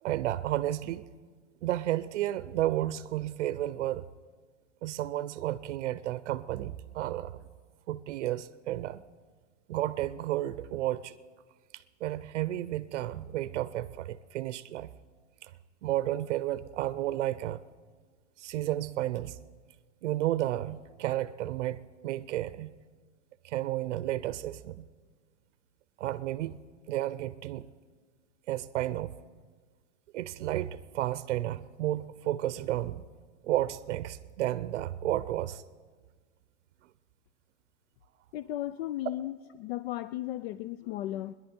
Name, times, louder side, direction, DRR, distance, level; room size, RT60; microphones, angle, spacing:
voice 1, 0.0-1.1 1.6-4.1 4.8-7.4 7.9-9.0 9.7-11.2 11.7-14.9 15.4-15.5 15.8-17.6 18.4-19.4 20.0-22.7 23.4-24.9 26.0-26.6 26.9-27.7 28.5-29.2 30.1-33.0 33.4-35.6, right 14 dB, 90° right, 16 dB, 0.6 m, -32 dB
voice 2, 38.3-41.3, left 14 dB, 60° left, 16 dB, 0.4 m, -35 dB
22.0 x 10.5 x 4.4 m, 1.5 s
supercardioid pair, 140°, 35 cm